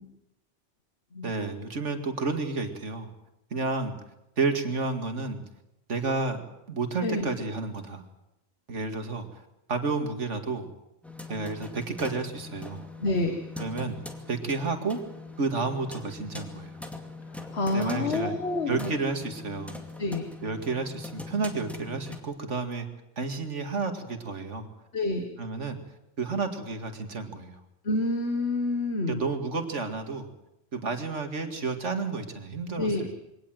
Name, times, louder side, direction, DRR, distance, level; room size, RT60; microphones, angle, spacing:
voice 1, 1.2-3.1 3.5-3.9 4.4-5.4 5.9-8.0 8.7-9.4 9.7-10.7 11.3-12.9 13.6-14.0 14.3-15.0 15.4-16.8 17.7-18.3 18.7-19.8 20.4-22.9 23.2-24.7 25.4-25.8 26.2-27.6 29.1-30.3 30.7-33.2, right 3 dB, 80° right, 6 dB, 2.4 m, -31 dB
voice 2, 7.0-7.3 13.0-13.4 17.3-19.0 20.0-20.3 24.9-25.3 27.8-29.2 32.8-33.1, left 2 dB, 60° left, 6 dB, 1.9 m, -28 dB
sound 1, 11.0-22.2, left 3 dB, ahead, 2.3 m, -42 dB
23.0 x 18.0 x 7.8 m, 0.87 s
omnidirectional pair, 1.2 m